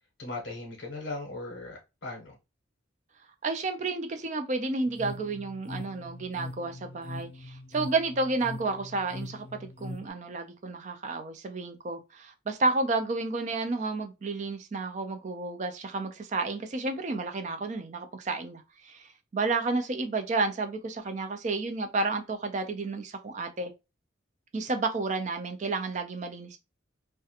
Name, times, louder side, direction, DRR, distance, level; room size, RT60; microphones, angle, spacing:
voice 1, 0.2-2.4, left 2 dB, 65° left, 0.7 m, -38 dB
voice 2, 3.4-23.7 24.5-26.6, right 3 dB, 35° right, 0.4 m, -31 dB
sound 1, 4.9-10.1, left 2 dB, 45° left, 0.4 m, -42 dB
2.4 x 2.2 x 2.7 m
head